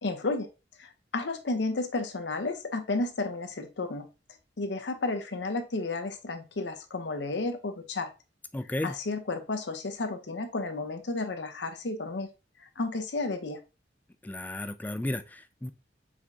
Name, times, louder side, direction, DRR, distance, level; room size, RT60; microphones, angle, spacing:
voice 1, 0.0-0.5 0.8-4.1 4.6-8.1 8.8-12.3 12.8-13.6, left 3 dB, 75° left, 7 dB, 0.7 m, -32 dB
voice 2, 8.5-8.9 14.2-15.7, left 1 dB, 10° left, 10 dB, 0.3 m, -33 dB
4.9 x 3.6 x 2.6 m, 0.29 s
head